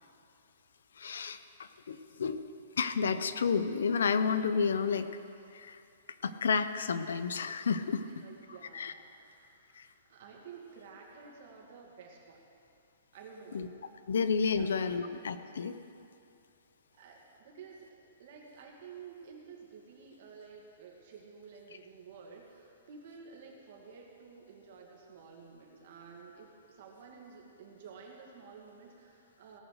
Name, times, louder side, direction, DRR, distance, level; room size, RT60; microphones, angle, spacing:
voice 1, 1.0-2.5 2.8-5.1 5.5-5.8 6.2-8.0 8.7-8.9 9.8-9.9 13.5-13.7 14.1-15.8, left 5 dB, 85° left, 12 dB, 0.8 m, -31 dB
voice 2, 8.0-12.5 13.1-13.7 14.1-14.2 14.5-15.1 16.9-29.6, right 5 dB, 40° right, -1 dB, 2.2 m, -52 dB
18.0 x 8.0 x 6.5 m, 2.6 s
hypercardioid pair, 180°, 0 cm